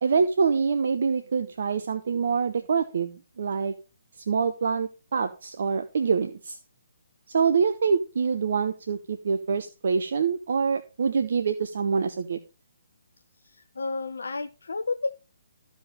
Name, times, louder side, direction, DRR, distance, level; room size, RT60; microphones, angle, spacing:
voice 1, 0.0-3.7 4.3-6.6 7.3-12.4, right 5 dB, 50° right, 8 dB, 0.9 m, -25 dB
voice 2, 13.4-15.2, left 3 dB, 60° left, 9 dB, 0.6 m, -31 dB
14.0 x 5.2 x 5.2 m, 0.33 s
figure-of-eight pair, 135°, 0 cm